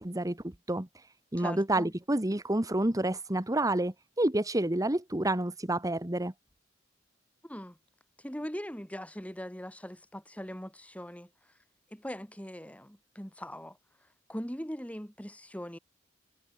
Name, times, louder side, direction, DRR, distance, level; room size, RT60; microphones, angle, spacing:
voice 1, 0.0-6.3, right 1 dB, 15° right, 1.3 m, -29 dB
voice 2, 1.4-1.9 7.4-7.8 8.2-11.3 11.9-13.8 14.3-15.8, equal, 5° left, 5.7 m, -40 dB
head